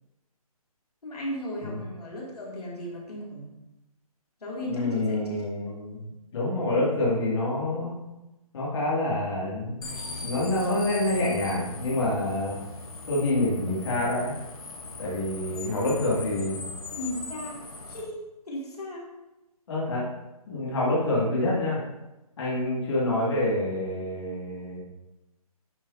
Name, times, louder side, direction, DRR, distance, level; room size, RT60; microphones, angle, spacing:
voice 1, 1.0-3.5 4.4-5.7 17.0-18.2 18.5-19.1, equal, 90° left, -4 dB, 2.6 m, -36 dB
voice 2, 4.7-6.0 6.3-7.9 8.5-9.9 10.2-12.6 13.1-14.3 15.0-16.6 19.7-20.1 20.5-21.8 22.4-24.8, left 1 dB, 50° left, -6 dB, 2.4 m, -27 dB
sound 1, 9.8-18.0, left 3 dB, 65° left, 1.5 m, -39 dB
10.5 x 4.8 x 2.7 m, 1.0 s
hypercardioid pair, 165°, 19 cm